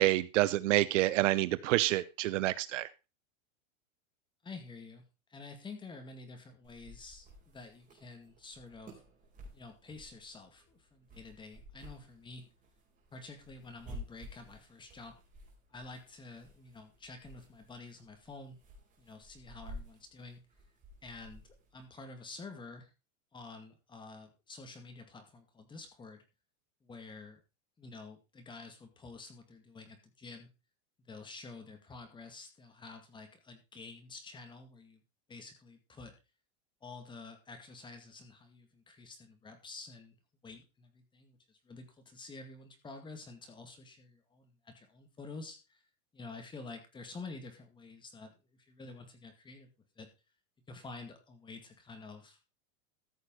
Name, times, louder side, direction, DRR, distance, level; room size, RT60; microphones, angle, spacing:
voice 1, 0.0-2.9, right 16 dB, 60° right, 17 dB, 0.8 m, -28 dB
voice 2, 4.4-5.0 5.3-9.0 9.5-12.4 13.1-15.2 15.7-18.6 19.0-20.4 21.0-22.9 23.3-26.2 26.8-27.4 27.8-30.5 31.0-35.0 35.3-36.1 36.8-40.2 40.4-45.8 46.1-49.7 50.0-50.1 50.7-52.4, left 3 dB, 10° left, 6 dB, 2.1 m, -49 dB
sound 1, 6.6-21.8, equal, 20° right, 4.3 m, -53 dB
14.5 x 6.6 x 4.7 m, 0.28 s
supercardioid pair, 160°, 41 cm